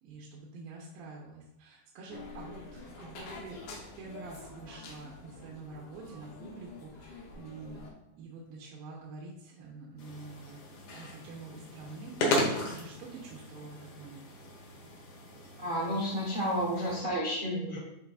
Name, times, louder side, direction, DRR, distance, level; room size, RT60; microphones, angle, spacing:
voice 1, 0.0-3.6 4.0-7.8 8.2-10.6 10.9-14.3, right 3 dB, 90° right, -2 dB, 2.7 m, -47 dB
sound 1, 2.1-7.9, left 3 dB, 80° left, 2.9 m, -47 dB
sound 2, 10.0-17.0, left 1 dB, 60° left, 2.1 m, -36 dB
voice 2, 15.6-17.8, equal, 65° right, -6 dB, 0.7 m, -31 dB
11.5 x 4.0 x 2.5 m, 0.94 s
omnidirectional pair, 4.1 m